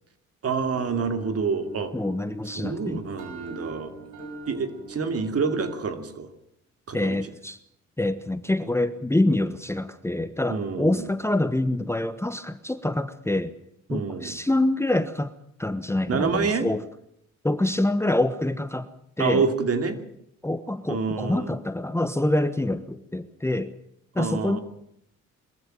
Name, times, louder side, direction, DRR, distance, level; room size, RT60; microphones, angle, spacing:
voice 1, 0.4-1.9 2.5-3.9 4.5-6.3 6.9-7.2 10.5-11.1 13.9-14.4 16.1-16.7 19.2-20.0 20.9-21.5 24.2-24.6, right 5 dB, 50° right, 8 dB, 2.8 m, -27 dB
sound 1, 0.7-5.7, right 2 dB, 85° right, 5.5 m, -42 dB
voice 2, 1.9-3.0 6.9-7.6 8.0-13.5 13.9-15.3 15.6-16.8 17.4-18.9 19.2-19.4 20.4-23.7 24.1-24.6, left 1 dB, 10° left, 11 dB, 1.1 m, -26 dB
22.0 x 14.0 x 9.2 m, 0.75 s
cardioid pair, 90°, 30 cm